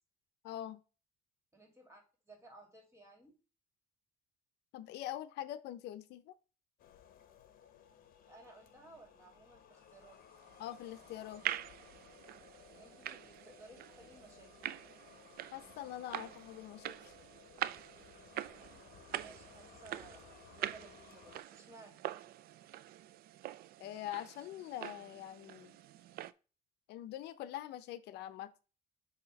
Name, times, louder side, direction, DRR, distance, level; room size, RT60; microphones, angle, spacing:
voice 1, 0.4-0.8 4.7-6.3 10.6-11.4 15.5-17.1 23.8-25.7 26.9-28.5, left 12 dB, 80° left, 13 dB, 0.6 m, -44 dB
voice 2, 1.5-3.3 8.3-10.2 12.7-14.7 19.0-22.0, right 2 dB, 15° right, 1 dB, 2.3 m, -58 dB
sound 1, 6.8-21.4, left 9 dB, 60° left, 0.9 m, -60 dB
sound 2, 10.3-26.3, right 13 dB, 65° right, 0.4 m, -45 dB
6.7 x 2.8 x 5.2 m, 0.34 s
cardioid pair, 110°, 17 cm